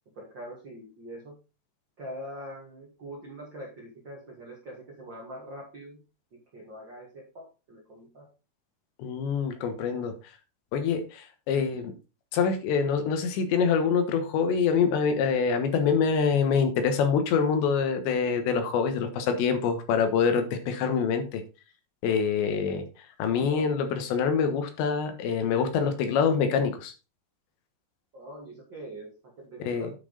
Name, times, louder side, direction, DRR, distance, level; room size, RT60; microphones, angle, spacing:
voice 1, 0.1-1.3 2.0-6.0 6.5-8.2 22.7-22.8 23.3-23.7 28.1-29.9, right 1 dB, 55° right, -1 dB, 1.2 m, -43 dB
voice 2, 9.0-10.1 10.7-11.9 12.3-21.4 22.0-22.9 23.2-26.9 29.6-29.9, left 6 dB, 75° left, 7 dB, 3.4 m, -25 dB
10.0 x 5.8 x 4.0 m, 0.30 s
omnidirectional pair, 5.3 m